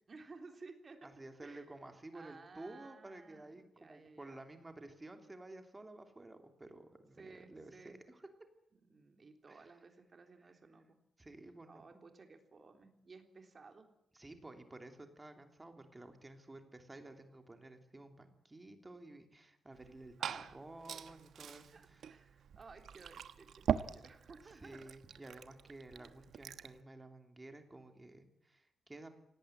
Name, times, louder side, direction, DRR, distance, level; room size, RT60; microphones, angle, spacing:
voice 1, 0.1-1.1 1.4-1.7 2.1-4.4 7.2-8.0 8.7-11.0 11.7-13.9 20.2-20.6 21.7-24.8 25.9-26.2, right 4 dB, 35° right, 5 dB, 3.6 m, -56 dB
voice 2, 1.0-8.3 9.5-9.7 10.5-10.6 11.2-12.0 14.1-22.1 24.4-29.1, right 2 dB, 15° right, 6 dB, 3.0 m, -53 dB
Glass / Fill (with liquid), 19.7-26.8, right 8 dB, 75° right, 1.2 m, -42 dB
27.0 x 18.5 x 9.2 m, 0.79 s
wide cardioid pair, 170°, 0 cm